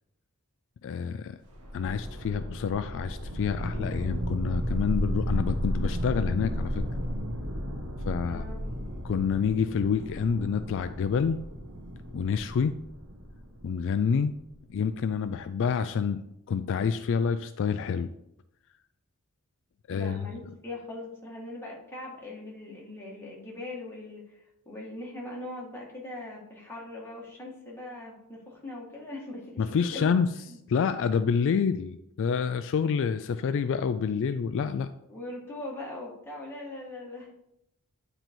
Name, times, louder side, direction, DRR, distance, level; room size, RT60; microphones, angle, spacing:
voice 1, 0.8-1.4 1.7-6.8 8.0-8.5 9.0-11.4 12.1-12.7 13.6-14.3 14.7-16.2 16.5-18.1 19.9-20.2 29.6-30.3 30.7-34.9, left 6 dB, 60° left, 10 dB, 0.3 m, -27 dB
sound 1, 1.5-14.5, equal, 85° right, 1.5 m, -34 dB
voice 2, 8.2-9.0 19.9-30.1 30.5-30.6 35.1-37.3, left 2 dB, 10° left, -4 dB, 1.9 m, -41 dB
9.1 x 3.9 x 4.5 m, 0.82 s
head